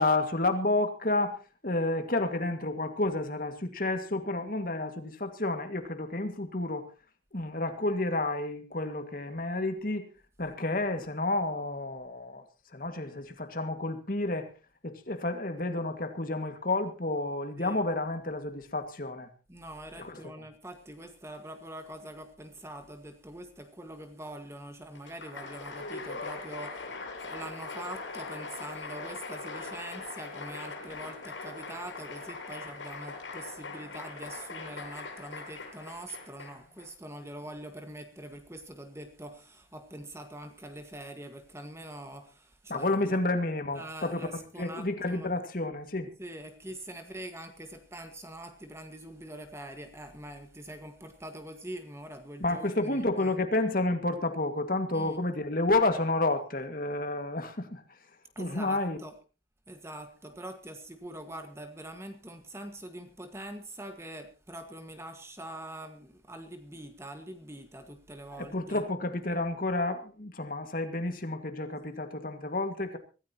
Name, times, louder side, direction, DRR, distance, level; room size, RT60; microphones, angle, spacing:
voice 1, 0.0-6.9 7.3-10.1 10.4-12.4 12.7-14.5 14.8-19.3 20.0-20.3 42.7-46.1 52.4-57.8 58.4-59.0 68.3-73.0, left 2 dB, 45° left, 2.0 m, -30 dB
voice 2, 19.5-26.9 27.2-43.2 43.7-45.3 46.2-53.3 54.9-55.2 58.3-59.2 59.7-68.9, right 1 dB, 15° right, 1.6 m, -44 dB
Applause, 24.9-36.8, left 3 dB, 85° left, 7.1 m, -41 dB
24.5 x 14.0 x 3.0 m
head